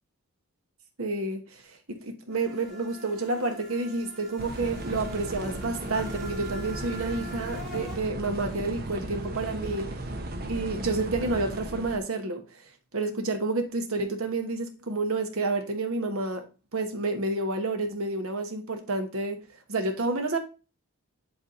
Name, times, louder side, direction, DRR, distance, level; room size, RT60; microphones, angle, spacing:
voice 1, 1.0-9.9 10.5-16.4 16.7-19.4 19.7-20.4, right 2 dB, 75° right, 1.2 m, -30 dB
sound 1, 2.3-8.0, right 1 dB, ahead, 2.3 m, -44 dB
sound 2, 4.4-12.0, right 1 dB, 45° right, 0.9 m, -36 dB
8.0 x 3.5 x 4.1 m
head